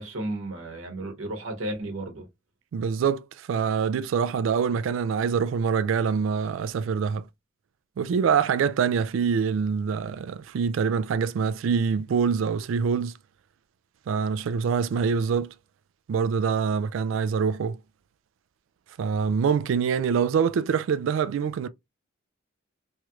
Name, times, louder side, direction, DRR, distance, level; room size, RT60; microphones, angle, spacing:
voice 1, 0.0-2.3, right 1 dB, 90° right, 1.0 m, -33 dB
voice 2, 2.7-7.2 8.0-13.1 14.1-15.5 16.1-17.8 19.0-21.7, right 6 dB, 75° right, 0.3 m, -25 dB
3.1 x 2.3 x 2.9 m
head